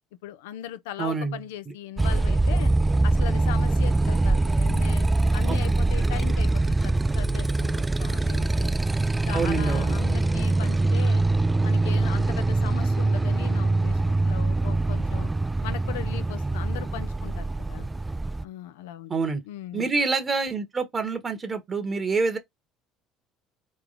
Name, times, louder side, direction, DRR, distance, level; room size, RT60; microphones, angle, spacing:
voice 1, 0.2-2.7 3.0-5.1 5.3-8.8 9.2-11.2 11.6-15.3 15.6-17.9 18.4-19.1 19.4-19.9, left 11 dB, 80° left, 0.5 m, -39 dB
voice 2, 1.0-1.4 5.5-5.6 9.3-9.9 19.1-19.4 19.7-22.4, right 4 dB, 30° right, 1.1 m, -26 dB
Motorcycle, 2.0-18.4, right 2 dB, 15° right, 0.3 m, -23 dB
3.3 x 3.2 x 3.9 m
hypercardioid pair, 65°, 0 cm